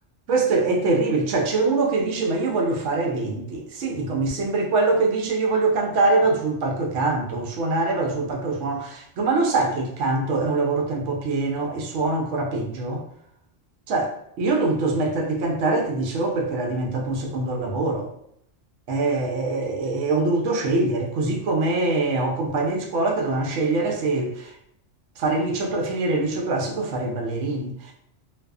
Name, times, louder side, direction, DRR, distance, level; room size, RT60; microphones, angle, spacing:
voice 1, 0.3-13.0 13.9-14.1 14.4-18.1 18.9-24.5 25.2-27.9, right 3 dB, 80° right, 1 dB, 0.9 m, -23 dB
2.5 x 2.3 x 2.3 m, 0.72 s
omnidirectional pair, 1.2 m